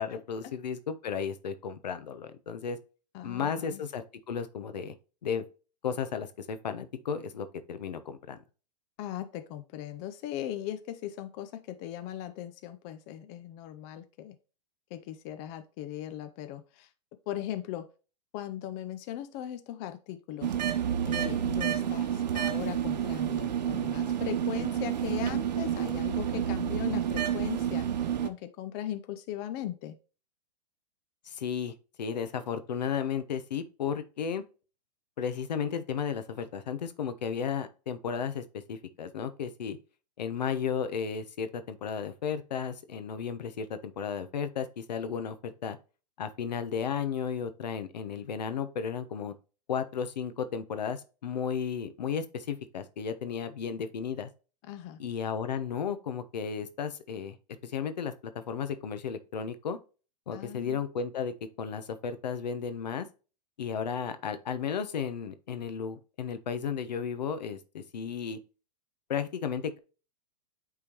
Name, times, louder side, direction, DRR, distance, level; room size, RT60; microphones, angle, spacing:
voice 1, 0.0-2.8 3.2-4.9 5.2-5.4 5.8-8.4 31.2-34.4 35.2-39.8 40.2-45.8 46.2-49.3 49.7-54.3 55.0-57.4 57.6-59.8 60.3-63.1 63.6-68.4 69.1-69.8, left 7 dB, 80° left, 1.0 m, -34 dB
voice 2, 3.1-3.8 9.0-14.4 14.9-16.9 17.3-17.9 18.3-20.5 21.0-27.9 28.2-30.0 54.7-55.0 60.3-60.8, left 12 dB, 40° left, 0.6 m, -39 dB
sound 1, 20.4-28.3, right 9 dB, 80° right, 0.8 m, -29 dB
8.6 x 3.7 x 3.0 m
hypercardioid pair, 125°, 21 cm